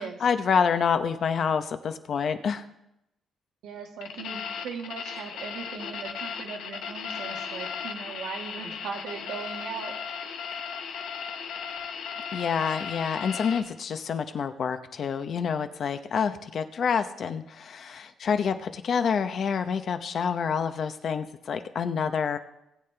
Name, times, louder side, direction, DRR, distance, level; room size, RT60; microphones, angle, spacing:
voice 1, 0.2-2.7 12.3-22.4, left 6 dB, 55° left, 9 dB, 0.8 m, -27 dB
voice 2, 3.6-9.9, right 5 dB, 85° right, 1 dB, 1.8 m, -38 dB
sound 1, 4.0-13.6, left 6 dB, 85° left, 1.1 m, -36 dB
19.5 x 7.9 x 3.4 m, 0.86 s
cardioid pair, 90°, 0 cm